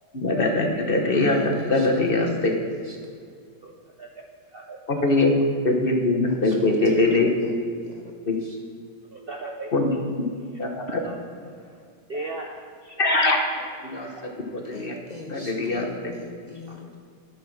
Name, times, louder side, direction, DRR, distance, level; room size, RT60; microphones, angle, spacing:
voice 1, 0.1-2.5 4.9-5.3 5.6-7.5 8.3-8.4 9.7-9.9 10.6-11.1 13.0-13.4 13.8-15.0 15.3-16.1, left 2 dB, 40° left, 2 dB, 1.0 m, -22 dB
voice 2, 1.2-2.5 2.8-2.9 6.4-6.5 6.9-7.1 7.4-7.5 7.8-8.6 14.7-17.0, left 3 dB, 70° left, 1 dB, 0.4 m, -42 dB
voice 3, 9.1-9.7 11.0-11.1 12.1-13.0 14.2-14.3, right 2 dB, 50° right, 1 dB, 0.7 m, -36 dB
11.5 x 6.2 x 6.3 m, 2.2 s
omnidirectional pair, 1.8 m